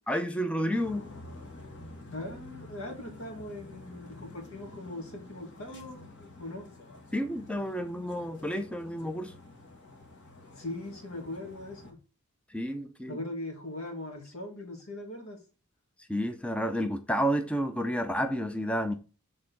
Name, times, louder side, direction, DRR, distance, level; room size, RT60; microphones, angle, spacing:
voice 1, 0.1-1.1 7.1-9.3 12.5-13.2 16.1-18.9, equal, 5° left, 0.4 m, -30 dB
sound 1, 0.7-11.9, left 2 dB, 60° left, 1.8 m, -49 dB
voice 2, 2.1-6.1 6.4-6.7 10.6-12.0 13.1-15.4, left 1 dB, 75° left, 1.9 m, -40 dB
6.5 x 3.8 x 3.8 m
head